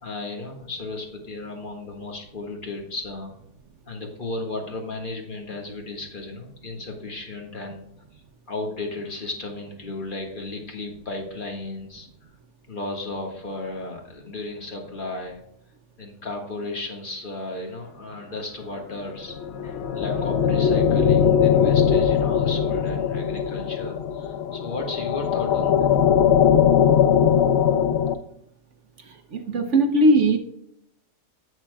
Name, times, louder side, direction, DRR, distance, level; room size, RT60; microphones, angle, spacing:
voice 1, 0.0-3.3 3.9-7.8 8.1-8.2 8.5-12.1 12.7-15.4 16.0-19.3 19.6-25.9, left 2 dB, 35° left, 1 dB, 1.7 m, -34 dB
sound 1, 19.3-28.1, left 8 dB, 80° left, 0.5 m, -20 dB
voice 2, 29.3-30.4, right 1 dB, 60° right, 6 dB, 0.9 m, -18 dB
11.0 x 7.3 x 2.3 m, 0.77 s
omnidirectional pair, 1.7 m